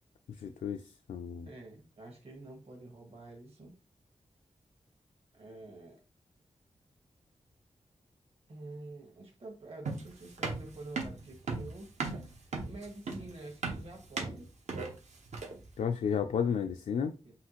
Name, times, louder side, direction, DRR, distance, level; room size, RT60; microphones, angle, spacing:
voice 1, 0.3-0.8 1.1-1.5 15.8-17.1, left 7 dB, 85° left, 0.4 m, -32 dB
voice 2, 1.4-3.7 5.3-6.0 8.5-14.5 17.2-17.4, right 2 dB, 50° right, 1.5 m, -48 dB
sound 1, 9.9-15.7, right 3 dB, 70° right, 0.9 m, -37 dB
5.6 x 2.4 x 3.0 m
wide cardioid pair, 75°, 12 cm